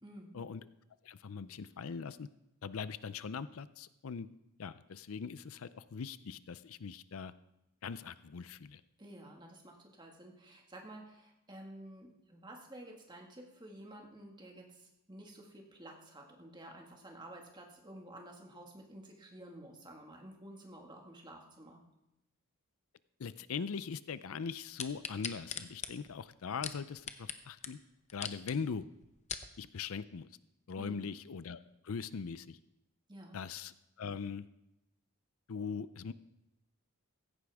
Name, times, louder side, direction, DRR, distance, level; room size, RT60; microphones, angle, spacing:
voice 1, 0.0-0.4 9.0-21.8 30.8-31.1 33.1-33.4, right 1 dB, 20° right, 1 dB, 1.8 m, -51 dB
voice 2, 1.0-2.3 2.6-4.3 4.6-7.3 7.8-8.8 23.2-27.8 28.1-28.8 29.6-30.3 30.7-32.6 33.3-34.4 35.5-36.1, left 5 dB, 70° left, 15 dB, 0.5 m, -41 dB
sound 1, 24.8-27.4 27.6-27.7 28.1-28.5 29.0-29.5 30.1-30.2, left 8 dB, 30° left, 0.7 m, -40 dB
16.0 x 14.5 x 3.5 m, 0.89 s
head